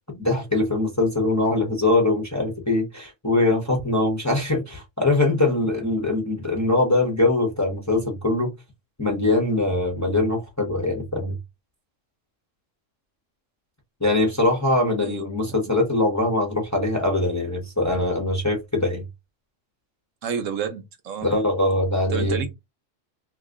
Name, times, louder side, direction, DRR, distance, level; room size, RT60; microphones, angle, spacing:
voice 1, 0.1-8.5 9.0-11.4 14.0-19.0 21.2-22.4, left 2 dB, 15° left, 0.7 m, -22 dB
voice 2, 20.2-21.3 22.1-22.5, right 7 dB, 80° right, 1.1 m, -29 dB
2.8 x 2.4 x 3.6 m
omnidirectional pair, 1.3 m